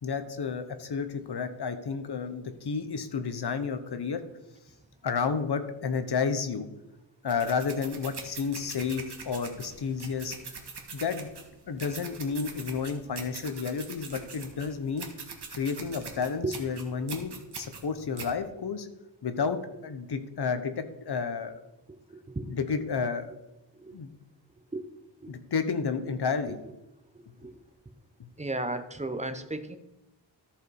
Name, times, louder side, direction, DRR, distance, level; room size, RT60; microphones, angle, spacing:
voice 1, 0.0-4.2 5.0-6.7 7.2-10.6 10.9-11.3 11.7-15.1 15.5-18.9 19.2-21.5 22.4-23.2 23.9-24.1 25.3-26.6 28.2-28.3, left 5 dB, 60° left, 10 dB, 1.0 m, -31 dB
sound 1, 7.3-18.3, right 5 dB, 60° right, 1.6 m, -43 dB
voice 2, 28.4-29.8, right 2 dB, 15° right, 9 dB, 0.7 m, -33 dB
13.5 x 5.1 x 4.8 m, 0.95 s
wide cardioid pair, 145°, 44 cm